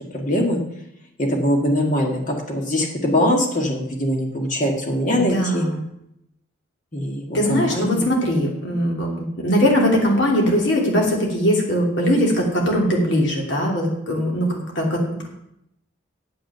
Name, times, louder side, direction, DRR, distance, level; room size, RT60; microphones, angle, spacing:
voice 1, 0.1-0.6 1.2-5.6 6.9-8.0, left 1 dB, 40° left, 1 dB, 1.8 m, -22 dB
voice 2, 5.2-5.8 7.3-15.3, equal, 60° left, -1 dB, 2.8 m, -20 dB
8.8 x 7.4 x 6.7 m, 0.80 s
head